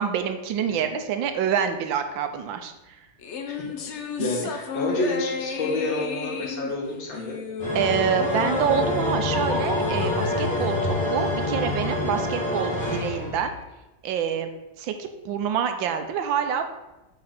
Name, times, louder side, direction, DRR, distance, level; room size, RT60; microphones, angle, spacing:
voice 1, 0.0-2.7 4.2-4.3 7.7-13.5 14.0-14.5 14.8-16.6, right 8 dB, 85° right, 7 dB, 1.5 m, -26 dB
sound 1, 3.2-11.8, left 5 dB, 60° left, 0.7 m, -32 dB
voice 2, 4.2-7.4, left 2 dB, 85° left, -1 dB, 2.4 m, -29 dB
sound 2, 7.6-13.6, left 1 dB, 15° left, 2.5 m, -27 dB
7.6 x 3.8 x 5.8 m, 1.0 s
omnidirectional pair, 2.1 m